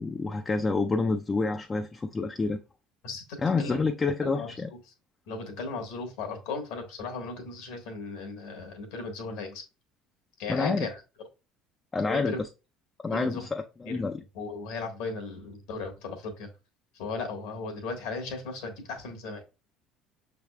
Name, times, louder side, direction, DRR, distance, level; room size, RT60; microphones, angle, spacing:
voice 1, 0.0-2.6 3.4-4.7 10.5-10.9 11.9-12.5 13.0-14.2, left 3 dB, 25° left, 0.4 m, -28 dB
voice 2, 3.0-3.8 4.2-4.7 5.3-9.6 10.4-11.0 12.1-12.4 13.1-13.5 13.8-14.0 14.3-16.5 16.9-19.4, left 3 dB, 70° left, 1.3 m, -36 dB
6.0 x 3.4 x 2.2 m
hypercardioid pair, 65°, 0 cm